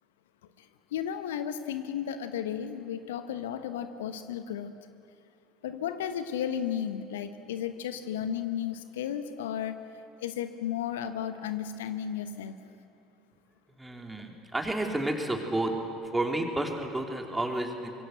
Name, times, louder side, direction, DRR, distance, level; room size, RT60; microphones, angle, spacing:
voice 1, 0.9-4.7 5.6-9.8 10.2-12.6, left 9 dB, 70° left, 10 dB, 1.0 m, -34 dB
voice 2, 13.8-15.7 16.1-17.9, right 1 dB, 10° right, 3 dB, 3.6 m, -31 dB
25.0 x 23.0 x 7.9 m, 2.7 s
figure-of-eight pair, 65°, 0 cm